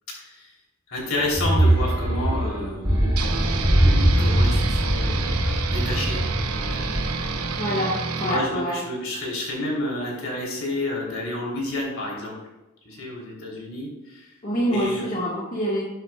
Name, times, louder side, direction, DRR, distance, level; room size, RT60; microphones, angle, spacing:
voice 1, 0.2-0.5 0.9-3.2 4.2-5.4 5.7-6.9 8.2-12.3 12.8-14.3 14.7-15.1, left 1 dB, 60° left, -3 dB, 3.2 m, -30 dB
Monster Slow exhail, 1.2-7.5, right 1 dB, 20° right, 2.2 m, -22 dB
sound 1, 3.2-8.4, right 5 dB, 80° right, 0.9 m, -29 dB
voice 2, 7.6-8.8 14.4-15.9, equal, 35° left, -6 dB, 1.5 m, -26 dB
12.0 x 8.2 x 2.3 m, 1.0 s
head